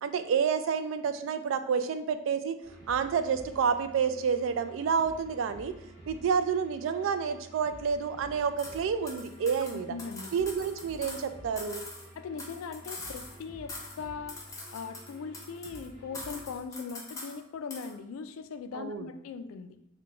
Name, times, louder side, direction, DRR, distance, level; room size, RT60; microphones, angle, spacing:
voice 1, 0.0-2.5 2.9-5.7 6.1-9.9 10.3-11.8 18.7-19.1, right 6 dB, 70° right, 10 dB, 0.3 m, -29 dB
sound 1, 2.6-16.6, right 1 dB, 40° right, 1.1 m, -51 dB
sound 2, 8.6-8.8 9.1-11.3 11.6-13.4 13.7-14.0 14.3-15.9 16.1-17.4 17.7-17.9, left 2 dB, 15° left, 0.7 m, -43 dB
voice 2, 9.6-10.3 12.2-14.4 14.7-19.8, left 5 dB, 90° left, 11 dB, 0.3 m, -40 dB
3.7 x 2.2 x 3.7 m, 0.80 s
head